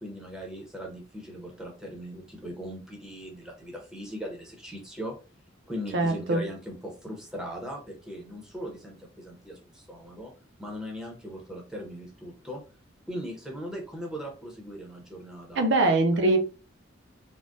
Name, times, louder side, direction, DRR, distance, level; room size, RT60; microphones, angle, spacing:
voice 1, 0.0-5.1 5.7-10.3 10.6-12.6 13.1-15.7, equal, 5° right, 0.7 m, -39 dB
voice 2, 5.9-6.4 15.6-16.4, right 2 dB, 65° right, 0.5 m, -22 dB
3.4 x 2.1 x 2.5 m
head